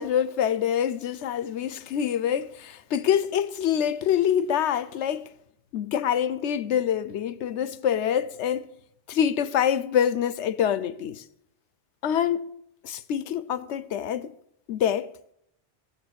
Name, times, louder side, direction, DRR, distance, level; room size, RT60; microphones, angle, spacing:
voice 1, 0.0-5.3 5.7-8.7 9.1-11.2 12.0-12.5 12.8-14.3 14.7-15.1, left 9 dB, 75° left, 1.0 m, -25 dB
15.5 x 7.4 x 8.0 m
omnidirectional pair, 1.2 m